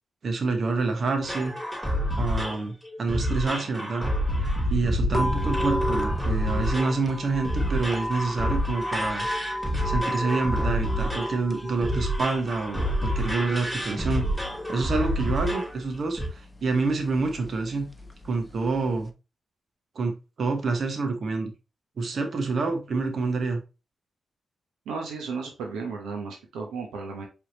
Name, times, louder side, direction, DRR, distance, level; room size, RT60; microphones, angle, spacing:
voice 1, 0.2-1.5 2.2-4.1 4.4-9.3 9.8-14.3 14.7-17.9 18.2-19.1 19.9-21.5 22.0-23.6, right 3 dB, 60° right, 5 dB, 1.0 m, -27 dB
sound 1, 1.2-15.8 16.2-16.3, equal, 10° right, 2.8 m, -28 dB
sound 2, 5.1-19.1, equal, 15° left, 0.8 m, -35 dB
voice 2, 24.9-27.3, right 4 dB, 85° right, 1 dB, 0.8 m, -34 dB
4.6 x 3.5 x 2.9 m, 0.29 s
supercardioid pair, 45°, 0 cm